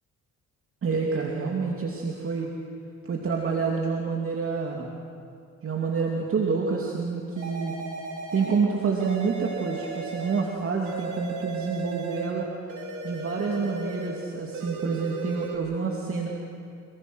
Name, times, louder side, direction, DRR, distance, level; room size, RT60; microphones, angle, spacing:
voice 1, 0.8-2.5 3.0-4.9 5.6-7.8 8.3-12.4 13.0-16.3, right 5 dB, 45° right, -1 dB, 2.6 m, -28 dB
sound 1, 7.4-8.7 9.0-10.5 10.8-12.4 12.7-14.2 14.5-15.6, right 3 dB, 75° right, 4.0 m, -36 dB
28.0 x 19.0 x 6.3 m, 2.4 s
cardioid pair, 90°, 30 cm